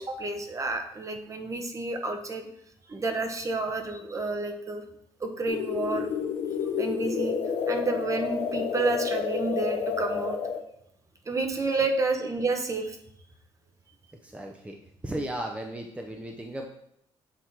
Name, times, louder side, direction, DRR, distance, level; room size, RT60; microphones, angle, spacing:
voice 1, 0.0-2.5 2.9-4.8 5.2-6.1 6.8-7.4 7.7-10.4 11.3-13.0, right 3 dB, 30° right, 5 dB, 1.0 m, -30 dB
sound 1, 5.5-10.6, left 6 dB, 65° left, 0.7 m, -30 dB
voice 2, 14.2-14.8 15.0-16.7, right 1 dB, 10° right, 2 dB, 0.6 m, -35 dB
7.9 x 2.9 x 4.7 m, 0.75 s
cardioid pair, 85°, 11 cm